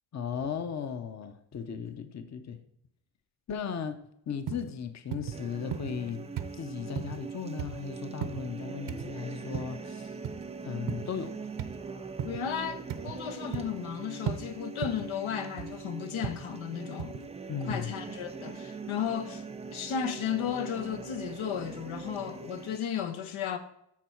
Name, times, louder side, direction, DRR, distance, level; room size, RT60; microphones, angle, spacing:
voice 1, 0.1-2.6 3.5-4.0 4.3-6.2 6.5-10.1 10.6-11.4 17.5-17.9, left 7 dB, 35° left, 0.7 m, -36 dB
sound 1, 4.5-4.7 5.1-5.4 5.7-6.1 6.4-6.6 7.0-7.2 7.6-7.8 8.2-8.4 8.9-9.1 9.5-9.8 10.2-10.4 10.9-11.1 11.6-11.8 12.2-12.4 12.9-13.2 13.5-13.8 14.3-14.4 14.8-15.1 15.6-15.8 16.2-16.4 17.0-17.3 17.7-17.8, right 9 dB, 60° right, 0.8 m, -36 dB
sound 2, 5.3-22.8, right 5 dB, 15° right, 0.4 m, -42 dB
voice 2, 12.2-17.3 17.7-19.4 19.7-23.6, left 8 dB, 85° left, 1.1 m, -34 dB
13.5 x 4.6 x 4.5 m
wide cardioid pair, 145°, 46 cm